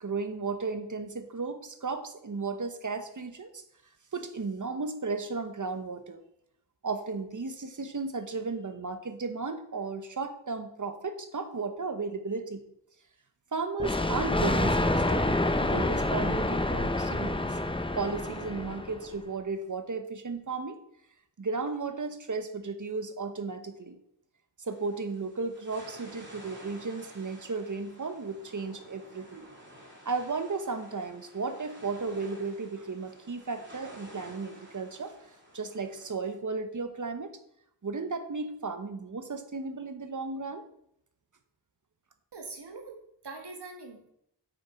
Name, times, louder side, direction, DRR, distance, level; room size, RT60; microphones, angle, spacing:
voice 1, 0.0-3.6 4.1-6.2 6.8-12.6 13.5-15.3 15.6-20.8 21.4-24.0 24.6-29.5 30.0-35.1 35.5-37.3 37.8-40.6, right 4 dB, 45° right, 8 dB, 1.1 m, -34 dB
Thunder, 13.8-19.1, left 1 dB, 15° left, 0.6 m, -28 dB
sound 1, 24.7-36.1, equal, 25° right, 2.7 m, -52 dB
voice 2, 42.3-44.1, right 3 dB, 70° right, 3 dB, 1.7 m, -43 dB
9.1 x 6.3 x 4.4 m, 0.75 s
wide cardioid pair, 70°, 41 cm